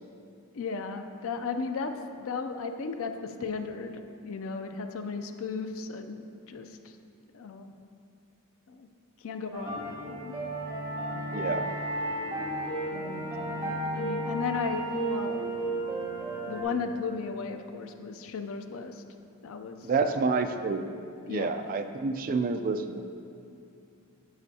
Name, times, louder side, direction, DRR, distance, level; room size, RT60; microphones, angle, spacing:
voice 1, 0.5-6.9 7.3-7.7 8.7-8.9 9.2-10.3 11.1-11.5 12.9-15.8 16.5-19.0 19.4-19.9 21.3-21.6, left 4 dB, 65° left, 7 dB, 0.5 m, -36 dB
sound 1, 9.5-16.6, right 1 dB, 15° right, 1.3 m, -33 dB
voice 2, 11.3-11.7 19.8-20.8 21.3-23.0, right 4 dB, 40° right, 8 dB, 0.3 m, -28 dB
10.5 x 6.0 x 2.8 m, 2.7 s
head